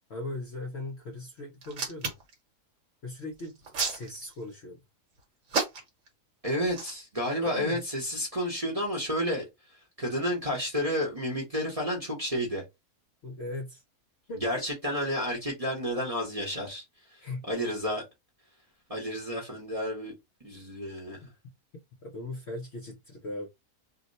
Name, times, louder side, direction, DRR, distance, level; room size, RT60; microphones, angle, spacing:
voice 1, 0.1-2.1 3.0-3.6 3.9-4.8 7.4-7.8 13.2-13.8 14.3-14.4 17.2-17.4 22.0-23.5, left 2 dB, 55° left, 0.7 m, -38 dB
Hands, 1.6-2.3 3.4-4.5 5.5-6.1 6.7-6.9, right 4 dB, 55° right, 1.2 m, -31 dB
voice 2, 6.4-9.4 10.0-12.6 14.4-16.8 17.1-18.0 18.9-20.1 20.4-21.2, equal, 30° right, 0.8 m, -31 dB
2.8 x 2.1 x 3.9 m
omnidirectional pair, 1.7 m